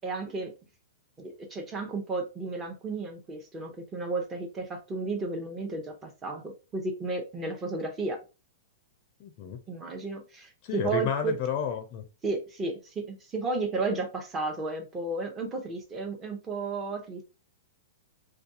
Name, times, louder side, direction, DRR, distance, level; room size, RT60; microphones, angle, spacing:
voice 1, 0.0-0.5 1.2-8.2 9.7-11.3 12.2-17.2, right 3 dB, 20° right, 0.8 m, -33 dB
voice 2, 9.2-9.6 10.6-12.0, left 7 dB, 40° left, 0.4 m, -31 dB
2.4 x 2.3 x 2.7 m
hypercardioid pair, 125°, 0 cm